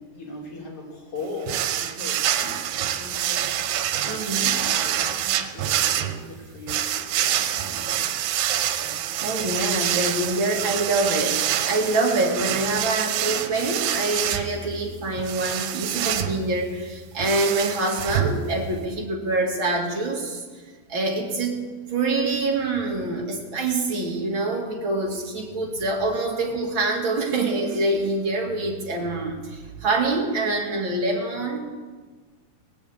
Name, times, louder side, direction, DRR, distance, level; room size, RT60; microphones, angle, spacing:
voice 1, 0.0-8.1 8.8-9.0, left 2 dB, 45° left, -3 dB, 4.0 m, -39 dB
sound 1, 1.5-18.9, right 10 dB, 90° right, 2.6 m, -27 dB
voice 2, 4.0-4.6 8.9-20.4 20.9-31.6, right 2 dB, 40° right, 0 dB, 2.4 m, -25 dB
18.5 x 7.4 x 8.5 m, 1.4 s
omnidirectional pair, 4.0 m